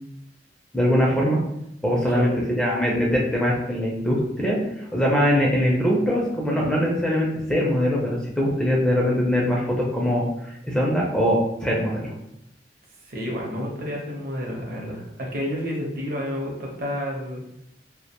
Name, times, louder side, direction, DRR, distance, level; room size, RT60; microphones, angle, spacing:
voice 1, 0.7-1.4 1.8-4.6 4.9-12.1, equal, 5° left, -4 dB, 0.4 m, -22 dB
voice 2, 1.9-2.3 13.1-17.4, equal, 55° right, -2 dB, 0.7 m, -30 dB
2.4 x 2.1 x 2.8 m, 0.78 s
head